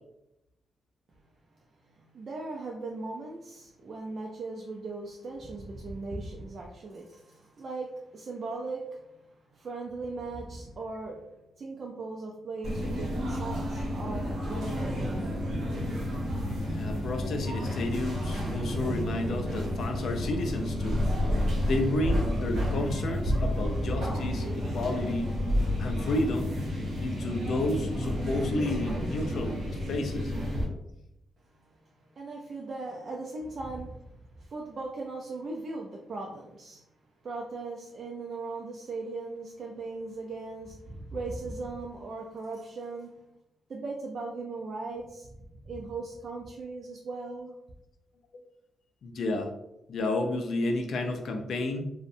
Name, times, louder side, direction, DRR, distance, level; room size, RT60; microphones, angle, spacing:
voice 1, 1.8-11.2 11.6-14.9 31.4-36.8 37.2-43.2 43.7-47.6, right 3 dB, 50° right, -1 dB, 0.3 m, -38 dB
sound 1, 12.6-30.6, equal, 75° right, 0.8 m, -30 dB
voice 2, 16.7-21.0 21.6-25.3 25.8-26.5 27.0-30.3 49.0-49.5 49.9-51.8, left 2 dB, 70° left, 5 dB, 0.3 m, -31 dB
2.5 x 2.0 x 2.5 m, 0.86 s
cardioid pair, 90°, 0 cm